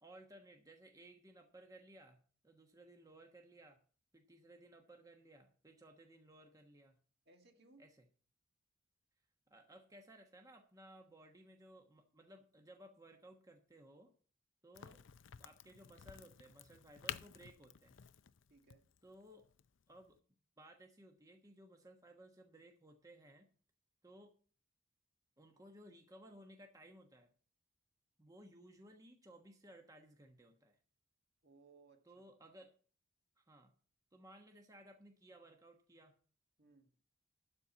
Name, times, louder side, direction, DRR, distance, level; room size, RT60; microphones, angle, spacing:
voice 1, 0.0-3.8 4.1-7.0 7.8-8.1 9.5-14.1 14.6-15.0 15.3-18.0 19.0-19.5 19.9-20.2 20.6-23.5 24.0-24.3 25.4-27.3 28.2-30.8 32.1-32.7 33.4-33.7 34.1-36.1, right 1 dB, 15° right, 3 dB, 1.2 m, -59 dB
voice 2, 7.3-7.9 18.5-18.9 31.4-32.2 36.6-36.9, right 3 dB, 55° right, 4 dB, 1.8 m, -65 dB
Crack, 14.7-20.2, left 9 dB, 70° left, 0.5 m, -51 dB
12.5 x 4.3 x 8.2 m, 0.40 s
head